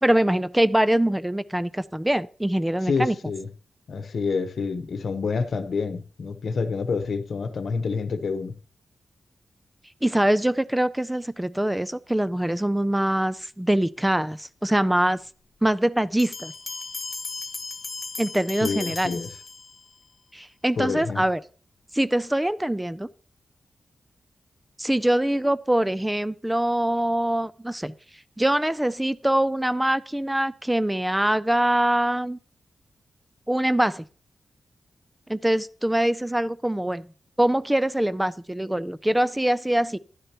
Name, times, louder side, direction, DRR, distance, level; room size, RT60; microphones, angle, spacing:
voice 1, 0.0-3.2 10.0-15.2 15.6-16.5 18.2-19.1 20.3-21.4 21.9-23.1 24.8-27.9 28.4-32.4 33.5-34.0 35.3-37.1 37.4-40.0, right 1 dB, 10° right, 15 dB, 0.3 m, -23 dB
voice 2, 2.9-3.5 3.9-8.5 18.6-19.3 20.8-21.2, left 4 dB, 70° left, 10 dB, 0.9 m, -28 dB
sound 1, 16.2-20.0, left 3 dB, 30° left, 1.0 m, -36 dB
11.0 x 10.0 x 3.0 m, 0.40 s
wide cardioid pair, 110°, 0 cm